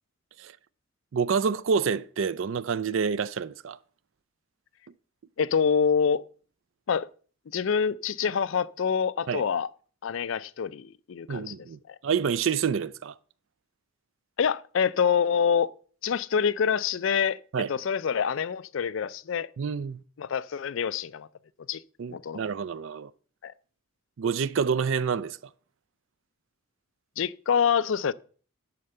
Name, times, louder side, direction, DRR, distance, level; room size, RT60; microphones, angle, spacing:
voice 1, 1.1-3.8 9.3-9.4 11.3-13.1 17.5-17.7 19.6-20.0 22.0-23.1 24.2-25.4, right 6 dB, 65° right, 0.4 m, -28 dB
voice 2, 5.4-6.2 6.9-7.1 7.5-9.7 10.0-11.5 11.9-12.0 14.4-15.7 16.0-17.4 17.7-19.5 20.2-21.3 21.7-21.8 22.1-22.5 23.4-23.5 27.2-28.1, left 7 dB, 65° left, 0.4 m, -26 dB
10.5 x 4.3 x 6.6 m
head